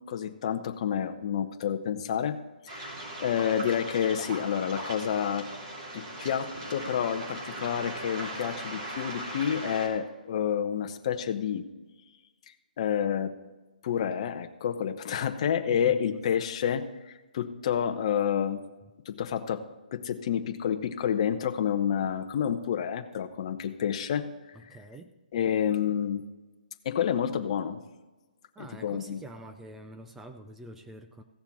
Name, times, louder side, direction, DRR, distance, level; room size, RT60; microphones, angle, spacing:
voice 1, 0.1-2.4 2.6-5.5 5.9-11.7 12.8-13.3 13.8-18.6 19.1-19.6 19.9-24.3 25.3-26.2 26.8-27.8 28.6-29.2, left 8 dB, 40° left, 6 dB, 0.8 m, -29 dB
Waves surf, 2.7-9.9, right 1 dB, 35° right, 2.9 m, -39 dB
voice 2, 15.7-16.2 24.5-25.1 28.6-31.2, right 2 dB, 5° right, 6 dB, 0.4 m, -46 dB
16.0 x 6.9 x 4.2 m, 1.2 s
hypercardioid pair, 165°, 5 cm